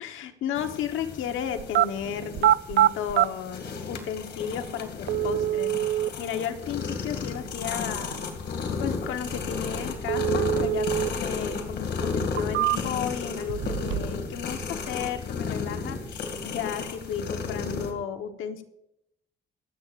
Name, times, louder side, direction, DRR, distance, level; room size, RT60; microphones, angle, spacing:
voice 1, 0.0-8.3 8.8-18.6, left 8 dB, 85° left, 6 dB, 1.3 m, -34 dB
sound 1, 0.5-17.9, left 4 dB, 60° left, 2.5 m, -33 dB
sound 2, 1.6-1.9 2.3-3.3 4.3-4.4 5.1-6.1 10.1-11.1 11.5-11.6 12.2-13.1 13.5-14.2 14.5-15.1, right 13 dB, 70° right, 0.4 m, -24 dB
26.0 x 9.0 x 2.6 m, 0.82 s
cardioid pair, 90°, 20 cm